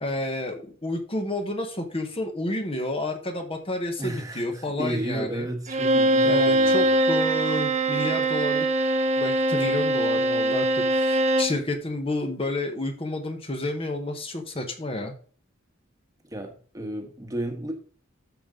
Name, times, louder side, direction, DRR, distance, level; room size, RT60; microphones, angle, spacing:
voice 1, 0.0-5.4 6.2-8.7 9.2-15.1, left 2 dB, 30° left, 1.3 m, -30 dB
voice 2, 4.0-6.9 16.3-17.7, right 1 dB, 15° right, 1.3 m, -33 dB
Bowed string instrument, 5.7-11.6, right 1 dB, 35° right, 0.7 m, -22 dB
13.0 x 5.3 x 3.8 m
head